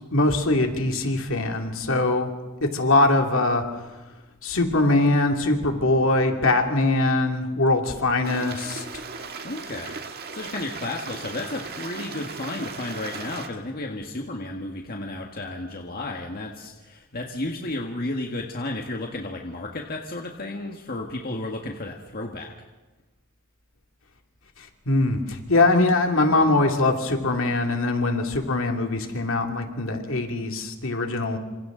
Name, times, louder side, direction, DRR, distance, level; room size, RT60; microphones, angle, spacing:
voice 1, 0.1-2.3 2.7-3.6 4.4-9.0 24.9-31.4, left 2 dB, 70° left, 3 dB, 2.6 m, -22 dB
Stream, 8.2-13.5, right 4 dB, 50° right, 1.6 m, -37 dB
voice 2, 9.4-10.0 10.3-22.5, left 2 dB, 45° left, 1 dB, 1.6 m, -33 dB
27.5 x 26.0 x 3.9 m, 1.2 s
head